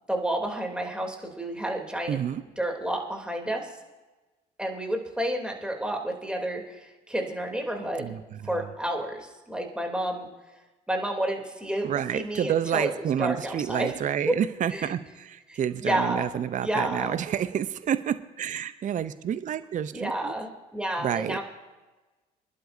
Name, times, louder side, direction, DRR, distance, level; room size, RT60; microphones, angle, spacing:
voice 1, 0.1-2.2 2.6-3.8 4.6-8.1 8.4-10.3 10.9-11.9 12.1-13.9 14.7-14.9 15.5-16.3 16.6-17.2 19.9-21.4, right 1 dB, 5° right, 2 dB, 3.0 m, -30 dB
voice 2, 2.1-2.4 8.0-8.7 11.8-20.3 21.0-21.4, right 9 dB, 40° right, 14 dB, 0.6 m, -29 dB
25.5 x 11.5 x 2.7 m, 1.2 s
hypercardioid pair, 60°, 21 cm